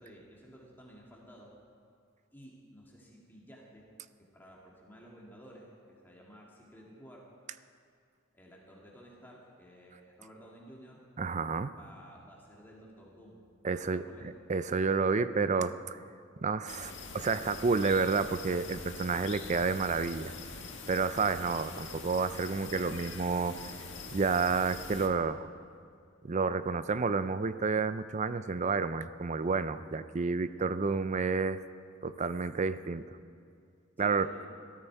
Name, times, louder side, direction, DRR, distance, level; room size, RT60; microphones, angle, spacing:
voice 1, 0.0-1.5 2.3-3.9 4.2-7.3 8.3-11.0 11.8-13.4 13.9-14.3 34.0-34.5, equal, 10° left, -3 dB, 2.0 m, -54 dB
voice 2, 11.2-11.7 13.6-14.0 14.5-16.0 16.4-20.3 20.9-23.6 24.1-25.5 26.2-31.6 32.0-33.0 34.0-34.3, right 4 dB, 35° right, 13 dB, 0.5 m, -30 dB
sound 1, 16.7-25.1, left 4 dB, 60° left, 1.8 m, -44 dB
18.0 x 13.5 x 4.6 m, 2.3 s
head